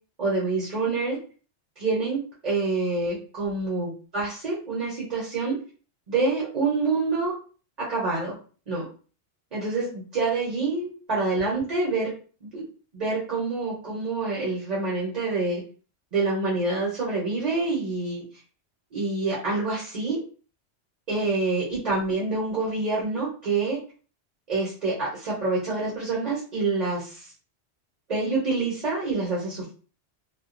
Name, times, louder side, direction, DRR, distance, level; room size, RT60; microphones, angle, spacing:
voice 1, 0.2-1.2 1.8-5.6 6.1-7.3 7.9-8.3 8.7-8.8 9.5-12.1 12.4-12.6 12.9-15.6 16.1-18.2 18.9-20.2 21.1-23.8 24.5-27.3 28.1-29.7, right 3 dB, 40° right, -6 dB, 0.9 m, -27 dB
2.3 x 2.2 x 2.4 m, 0.39 s
omnidirectional pair, 1.2 m